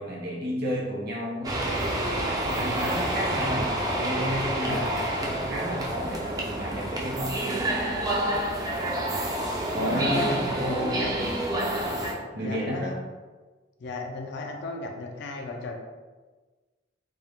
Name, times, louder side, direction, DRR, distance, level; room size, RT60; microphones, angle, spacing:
voice 1, 0.0-1.6 2.0-4.9 5.2-7.4 9.7-10.5 12.3-13.0, equal, 55° right, -3 dB, 0.7 m, -31 dB
sound 1, 1.4-12.1, right 1 dB, 20° right, 0.3 m, -28 dB
voice 2, 2.5-3.0 4.7-4.9 9.8-11.2 12.4-13.0 13.8-15.8, left 2 dB, 65° left, 2 dB, 0.4 m, -35 dB
2.3 x 2.0 x 2.9 m, 1.3 s
head